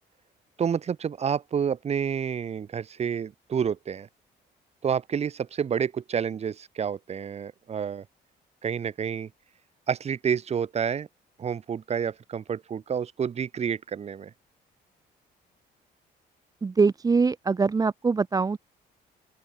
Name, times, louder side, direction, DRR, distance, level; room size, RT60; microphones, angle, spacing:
voice 1, 0.6-4.1 4.8-8.0 8.6-9.3 9.9-11.1 11.4-14.3, right 7 dB, 40° right, 4.9 m, -29 dB
voice 2, 16.6-18.6, right 4 dB, 20° right, 1.3 m, -23 dB
open air
cardioid pair, 150°, 17 cm